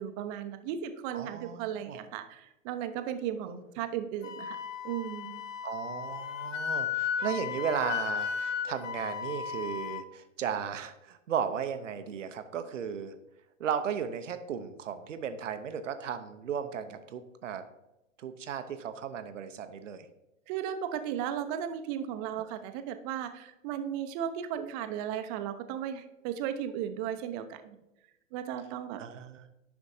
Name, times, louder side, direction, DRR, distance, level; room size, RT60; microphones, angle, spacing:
voice 1, 0.0-4.6 4.8-5.4 20.5-27.8 28.3-29.0, right 9 dB, 30° right, 9 dB, 0.7 m, -35 dB
voice 2, 1.1-2.0 5.6-13.1 13.6-17.6 18.2-20.1 22.4-22.5 29.0-29.5, right 7 dB, 70° right, 10 dB, 0.7 m, -35 dB
Wind instrument woodwind instrument, 4.2-10.0, left 7 dB, 75° left, 0.7 m, -35 dB
10.0 x 6.1 x 2.7 m, 0.94 s
figure-of-eight pair, 105°, 38 cm